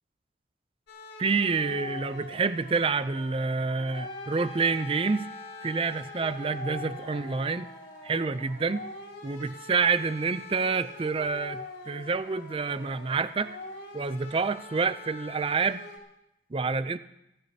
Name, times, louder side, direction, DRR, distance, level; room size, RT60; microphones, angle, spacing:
sound 1, 0.9-16.0, left 2 dB, 70° left, 3.3 m, -44 dB
voice 1, 1.2-5.3 5.6-7.7 8.0-8.9 9.2-13.6 13.9-15.9 16.5-17.0, right 4 dB, 30° right, 14 dB, 0.4 m, -28 dB
Trumpet, 3.9-8.6, left 3 dB, 25° left, 0.9 m, -46 dB
27.0 x 12.0 x 2.8 m, 0.85 s
head